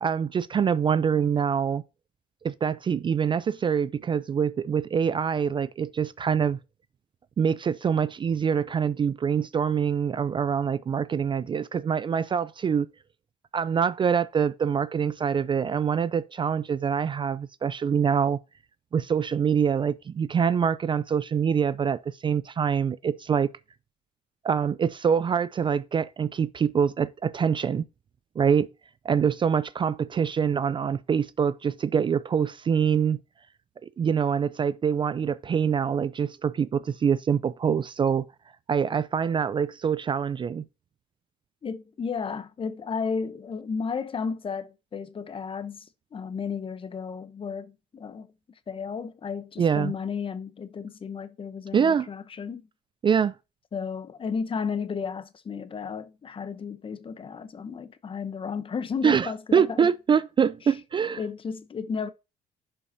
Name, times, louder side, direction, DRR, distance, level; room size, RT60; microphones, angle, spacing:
voice 1, 0.0-1.8 2.4-6.6 7.4-12.9 13.5-18.4 18.9-23.5 24.4-27.8 28.4-28.7 29.0-33.2 33.8-38.2 38.7-40.7 49.6-49.9 51.7-52.1 53.0-53.3 59.0-61.2, right 7 dB, 30° right, 0.3 m, -25 dB
voice 2, 41.6-48.3 48.7-52.6 53.7-59.9 60.7-60.8 61.1-62.1, left 5 dB, 30° left, 0.8 m, -33 dB
11.0 x 5.4 x 2.7 m
cardioid pair, 110°, 17 cm